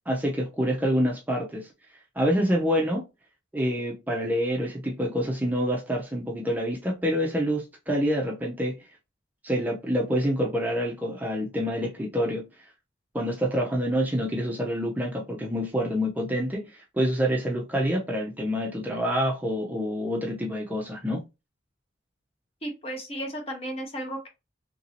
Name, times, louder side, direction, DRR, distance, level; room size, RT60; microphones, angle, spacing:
voice 1, 0.1-1.7 2.2-3.0 3.5-8.8 9.4-12.5 13.1-21.2, equal, 10° right, 0.4 m, -27 dB
voice 2, 22.6-24.3, right 1 dB, 30° left, 0.8 m, -34 dB
2.9 x 2.6 x 2.7 m
head